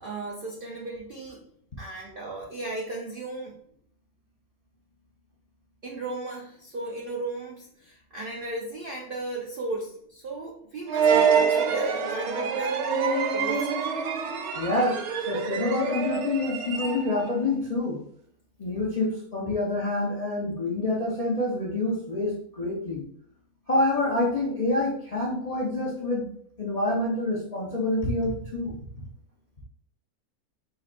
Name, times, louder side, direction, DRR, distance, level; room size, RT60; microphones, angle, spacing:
voice 1, 0.0-1.4 1.8-3.6 5.8-12.8 13.3-13.7, right 2 dB, 50° right, -2 dB, 0.7 m, -35 dB
sound 1, 10.9-17.3, right 6 dB, 75° right, 1.1 m, -26 dB
voice 2, 14.5-18.0 18.6-23.0 23.7-26.3 26.6-28.8, left 2 dB, 35° left, -5 dB, 0.7 m, -27 dB
4.3 x 4.2 x 2.5 m, 0.65 s
omnidirectional pair, 1.6 m